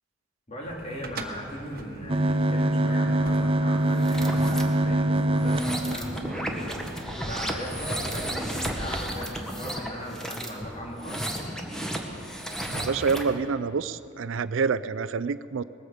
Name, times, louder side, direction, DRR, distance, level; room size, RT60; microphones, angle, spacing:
voice 1, 0.5-11.3, equal, 35° left, -2 dB, 3.0 m, -38 dB
sound 1, 0.6-7.9, right 2 dB, 50° right, 1.1 m, -45 dB
sound 2, 2.1-7.1 7.7-7.8 8.0-8.2 8.7-9.0, right 1 dB, 30° right, 0.6 m, -25 dB
sound 3, 3.9-4.6 5.3-13.4, equal, 5° left, 1.4 m, -33 dB
voice 2, 12.7-15.6, right 5 dB, 80° right, 15 dB, 0.4 m, -27 dB
19.5 x 14.5 x 5.0 m, 2.7 s
head